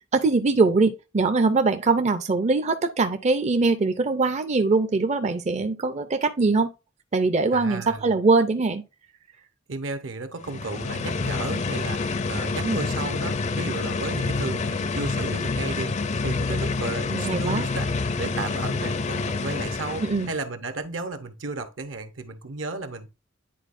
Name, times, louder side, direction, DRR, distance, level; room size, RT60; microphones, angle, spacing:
voice 1, 0.1-6.7 7.1-8.8 12.6-12.8 17.1-17.6 20.0-20.3, right 3 dB, 35° right, 0.5 m, -22 dB
voice 2, 7.5-8.1 9.7-17.9 18.2-23.1, right 3 dB, 75° right, 1.0 m, -34 dB
sound 1, 10.4-20.4, left 3 dB, 35° left, 0.4 m, -28 dB
10.0 x 4.1 x 2.6 m
head